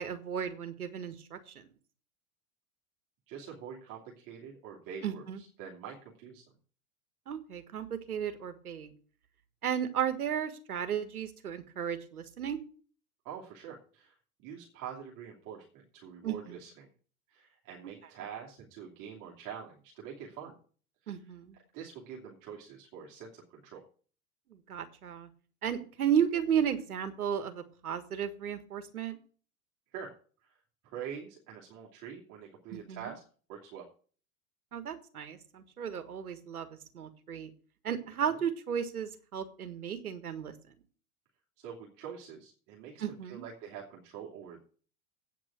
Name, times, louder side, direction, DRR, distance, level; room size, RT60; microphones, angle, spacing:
voice 1, 0.0-1.7 5.0-5.4 7.3-8.9 9.6-12.6 16.2-16.6 21.1-21.6 24.5-25.3 25.6-29.2 32.7-33.1 34.7-36.7 36.9-37.5 37.8-40.5 43.0-43.4, right 8 dB, 85° right, 9 dB, 1.6 m, -34 dB
voice 2, 3.3-6.4 13.2-14.1 14.4-16.9 17.3-20.5 21.0-21.1 21.7-23.8 29.9-30.1 30.4-30.6 30.8-33.2 33.5-33.9 38.3-38.4 41.6-44.6, right 7 dB, 45° right, -3 dB, 3.0 m, -45 dB
8.9 x 6.1 x 7.8 m, 0.42 s
hypercardioid pair, 95°, 43 cm